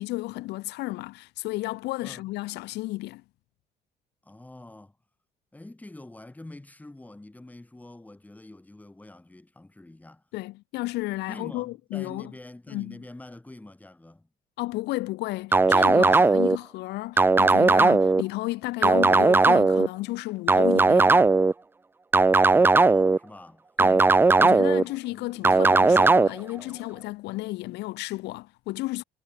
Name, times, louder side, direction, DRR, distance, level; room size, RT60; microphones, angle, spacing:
voice 1, 0.0-3.2 10.3-12.3 12.7-13.0 14.6-21.3 23.8-24.1 24.4-29.0, left 19 dB, 85° left, 1.7 m, -32 dB
voice 2, 4.2-5.0 5.5-10.2 11.3-14.3 22.5-23.7 24.1-26.8, left 2 dB, 10° left, 3.1 m, -46 dB
sound 1, 15.5-16.6 17.2-18.2 18.8-19.9 20.5-21.5 22.1-23.2 23.8-24.8 25.4-26.3, right 3 dB, 10° right, 0.4 m, -18 dB
cardioid pair, 110°, 17 cm